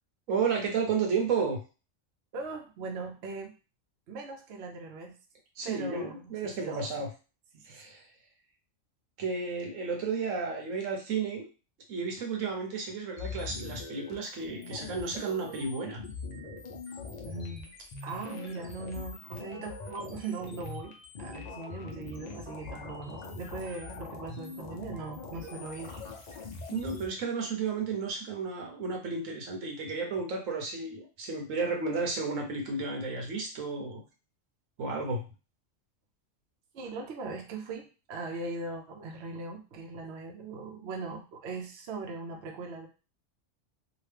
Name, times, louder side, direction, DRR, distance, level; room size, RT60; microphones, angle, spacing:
voice 1, 0.3-1.6 5.6-7.1 7.7-8.0 9.2-11.5 11.9-16.0 26.7-34.0 34.8-35.2, right 4 dB, 80° right, 2 dB, 1.2 m, -32 dB
voice 2, 2.3-3.5 4.1-5.1 5.6-6.8 7.5-7.8 17.2-17.7 18.0-26.0 36.7-42.9, right 3 dB, 65° right, 2 dB, 0.8 m, -40 dB
sound 1, 13.2-27.1, left 4 dB, 45° left, 0.6 m, -42 dB
2.9 x 2.4 x 3.3 m, 0.33 s
omnidirectional pair, 1.3 m